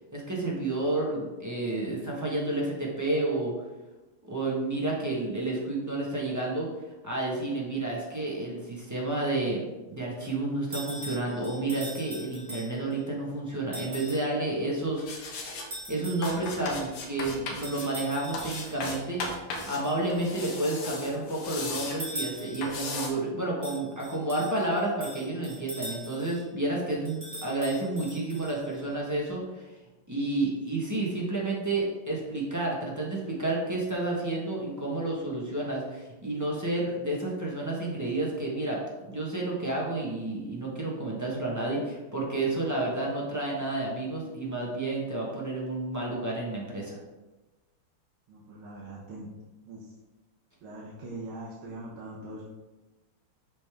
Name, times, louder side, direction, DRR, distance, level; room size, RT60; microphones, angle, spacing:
voice 1, 0.1-3.5 4.2-6.7 7.0-15.5 15.9-29.7 30.1-47.0, right 2 dB, 10° right, -4 dB, 0.9 m, -30 dB
sound 1, 10.7-13.0 13.7-14.3 15.7-16.7 17.6-19.0 19.8-20.7 21.4-22.9 23.6-26.4 27.1-28.8, equal, 30° right, 1.8 m, -42 dB
sound 2, 15.0-15.7 16.2-17.9 18.3-19.8 20.1-22.0 22.6-23.1, left 3 dB, 80° left, 1.9 m, -36 dB
voice 2, 48.3-49.3 49.6-49.9 50.6-52.4, right 2 dB, 75° right, -6 dB, 1.9 m, -42 dB
6.7 x 5.2 x 3.6 m, 1.1 s
omnidirectional pair, 2.4 m